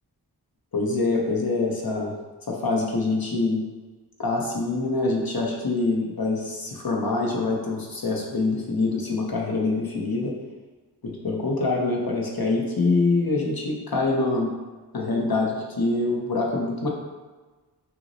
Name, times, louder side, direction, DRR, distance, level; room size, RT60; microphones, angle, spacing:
voice 1, 0.7-2.1 2.5-3.6 4.2-10.3 11.0-14.5 14.9-16.9, left 3 dB, 60° left, -1 dB, 0.8 m, -25 dB
5.7 x 2.0 x 2.7 m, 1.3 s
wide cardioid pair, 40°, 41 cm